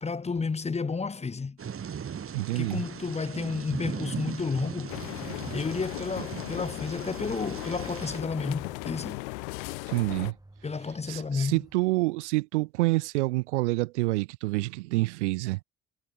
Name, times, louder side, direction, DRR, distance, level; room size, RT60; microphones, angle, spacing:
voice 1, 0.0-1.6 2.5-5.0 5.3-9.2 10.6-11.6, left 4 dB, 20° left, 0.9 m, -31 dB
Thunder / Rain, 1.6-8.2, right 7 dB, 40° right, 2.7 m, -39 dB
sound 1, 2.2-11.8, right 2 dB, 10° right, 5.1 m, -53 dB
voice 2, 2.3-2.8 9.9-10.3 11.1-15.6, right 21 dB, 75° right, 0.6 m, -27 dB
sound 2, 4.9-10.3, left 29 dB, 70° left, 0.8 m, -37 dB
figure-of-eight pair, 50°, 35 cm